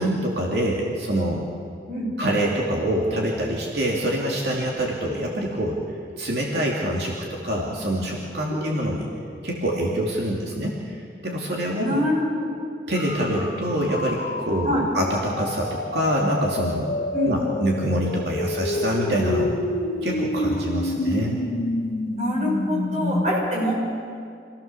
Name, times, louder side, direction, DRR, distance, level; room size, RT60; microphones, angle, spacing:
voice 1, 0.0-1.4 2.2-5.8 6.2-9.1 9.4-11.0 11.2-12.0 12.9-16.9 17.3-19.5 20.0-21.4, right 1 dB, 70° right, -2 dB, 2.7 m, -25 dB
voice 2, 11.8-12.5 14.6-14.8 17.1-17.3 22.2-23.8, left 1 dB, 40° right, -3 dB, 6.7 m, -25 dB
sound 1, 13.0-23.3, left 1 dB, 70° left, 1.9 m, -28 dB
26.5 x 16.5 x 7.0 m, 2.3 s
head